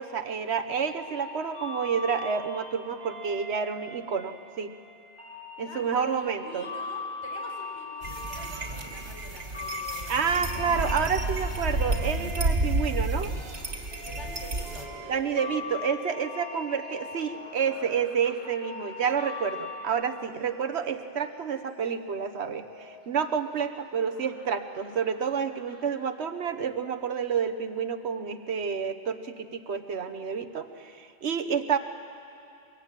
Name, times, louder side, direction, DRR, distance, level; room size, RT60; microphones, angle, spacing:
voice 1, 0.0-4.7 5.6-6.7 10.1-13.3 15.1-31.8, right 6 dB, 70° right, 7 dB, 1.3 m, -29 dB
sound 1, 0.8-19.8, left 3 dB, 25° left, 6.9 m, -41 dB
voice 2, 5.6-11.1 14.0-15.7 17.1-17.3, left 1 dB, 80° left, -1 dB, 5.0 m, -47 dB
sound 2, 8.0-14.8, right 2 dB, 85° right, 2.5 m, -31 dB
sound 3, 10.3-26.5 26.7-26.8, left 1 dB, 40° left, 5.9 m, -46 dB
23.5 x 22.5 x 9.1 m, 2.6 s
omnidirectional pair, 1.2 m